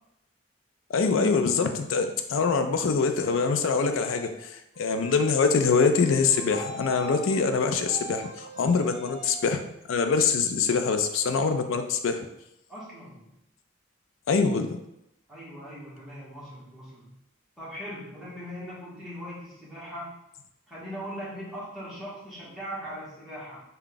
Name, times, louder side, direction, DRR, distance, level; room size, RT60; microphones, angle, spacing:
voice 1, 0.9-9.6 9.9-12.3 14.3-14.8, left 5 dB, 80° left, 7 dB, 0.4 m, -24 dB
sound 1, 3.0-3.4 3.9-4.4 4.7-5.3 5.8-9.4, right 2 dB, 30° right, 0.6 m, -43 dB
voice 2, 12.7-13.3 15.3-17.1 17.6-20.2 20.7-23.6, equal, ahead, -9 dB, 1.2 m, -40 dB
3.5 x 2.3 x 3.8 m, 0.82 s
head